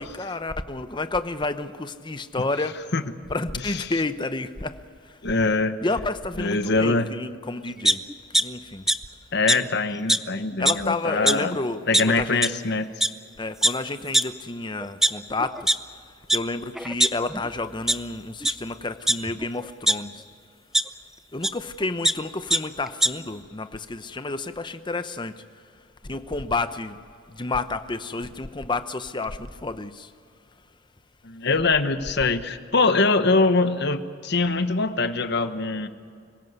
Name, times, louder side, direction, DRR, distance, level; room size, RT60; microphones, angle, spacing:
voice 1, 0.0-2.8 3.3-4.8 5.8-8.0 8.4-8.9 10.6-12.4 13.4-15.7 16.3-20.1 21.3-25.3 26.0-27.0 27.3-30.1, left 3 dB, 25° left, 0.8 m, -30 dB
voice 2, 5.2-5.8 6.4-7.1 9.3-11.6 11.9-12.9 31.2-35.9, left 3 dB, 55° left, 1.1 m, -23 dB
sound 1, 7.8-8.4 8.9-9.0 9.5-9.6 10.1-10.2 10.5-10.8 11.3-11.4 11.9-12.0 12.4-12.5 13.0-13.1 13.6-13.7 14.1-14.2 14.8-15.7 16.3-16.4 16.7-17.5 17.9-18.0 18.4-18.5 19.1-19.9 20.7-20.8 21.4-21.5 21.8-22.1 22.5-22.6 22.9-23.1, right 1 dB, ahead, 0.5 m, -20 dB
25.5 x 17.0 x 8.2 m
head